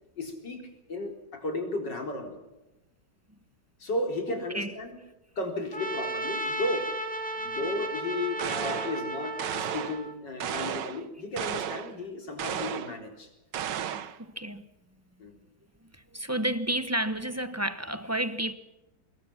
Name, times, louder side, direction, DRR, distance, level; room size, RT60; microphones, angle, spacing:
voice 1, 0.2-2.4 3.8-4.9 5.4-6.9 7.3-13.3 15.2-15.4, left 2 dB, 70° left, 4.7 m, -34 dB
voice 2, 4.3-4.7 7.3-7.5 14.2-14.7 15.9-18.5, right 1 dB, 10° right, 0.7 m, -31 dB
Trumpet, 5.7-10.2, right 1 dB, 5° left, 2.3 m, -34 dB
sound 1, 8.4-9.0 9.4-10.0 10.4-11.0 11.4-11.9 12.4-13.0 13.5-14.2, right 9 dB, 75° right, 1.6 m, -33 dB
25.5 x 21.0 x 5.9 m
omnidirectional pair, 2.0 m